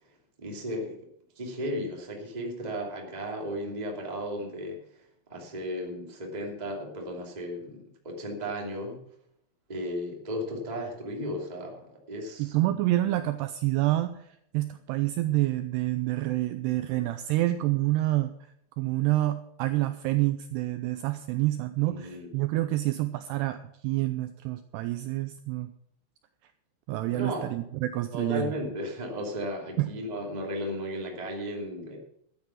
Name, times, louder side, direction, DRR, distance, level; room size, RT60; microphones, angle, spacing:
voice 1, 0.4-1.0 1.4-5.0 5.3-9.0 9.7-12.6 21.9-22.3 27.1-27.6 28.1-32.0, equal, 15° right, 0 dB, 1.7 m, -35 dB
voice 2, 12.4-18.3 18.8-25.7 26.9-28.5 29.8-29.9, right 16 dB, 85° right, 10 dB, 2.4 m, -28 dB
13.0 x 10.5 x 5.8 m, 0.73 s
omnidirectional pair, 5.3 m